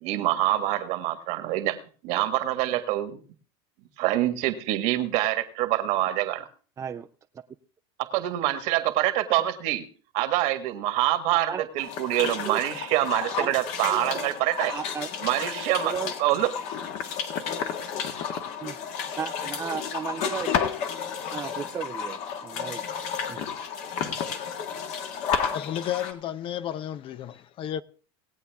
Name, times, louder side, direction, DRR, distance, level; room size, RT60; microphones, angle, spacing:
voice 1, 0.0-1.8 2.0-3.2 4.0-6.5 8.0-9.8 10.1-14.7 15.2-15.9 16.2-16.5, right 14 dB, 60° right, 1.7 m, -25 dB
voice 2, 6.8-7.1 11.5-11.7 12.5-12.6 13.4-13.5 13.9-14.0 14.7-15.1 15.8-16.1 18.6-18.8 19.2-20.5 21.3-22.8 23.3-23.4, right 7 dB, 20° right, 0.6 m, -34 dB
sound 1, 11.8-26.1, left 7 dB, 55° left, 1.7 m, -32 dB
voice 3, 25.5-27.8, left 11 dB, 40° left, 0.6 m, -32 dB
19.0 x 8.3 x 3.5 m
supercardioid pair, 120°, 13 cm